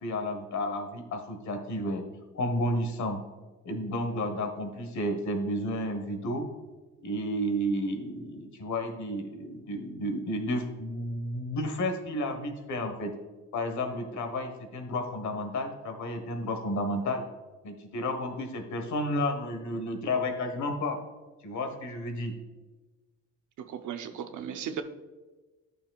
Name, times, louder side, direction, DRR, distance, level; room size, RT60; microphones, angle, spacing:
voice 1, 0.0-2.0 2.3-3.2 3.6-6.5 7.0-13.1 13.5-17.2 17.6-21.0 21.4-22.3, left 1 dB, 65° left, 5 dB, 1.4 m, -32 dB
voice 2, 23.6-24.8, right 8 dB, 70° right, 7 dB, 0.7 m, -36 dB
11.5 x 6.5 x 2.4 m, 1.2 s
cardioid pair, 135°, 31 cm